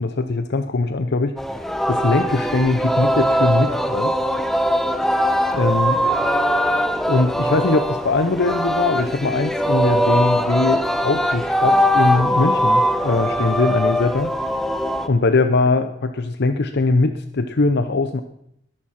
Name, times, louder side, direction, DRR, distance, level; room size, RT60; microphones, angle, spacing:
voice 1, 0.0-1.3 1.9-4.2 5.5-6.0 7.1-14.3 15.1-18.2, left 3 dB, 55° left, 9 dB, 0.8 m, -21 dB
Singing, 1.4-15.1, equal, ahead, 0.9 m, -21 dB
19.5 x 11.0 x 5.8 m, 0.77 s
head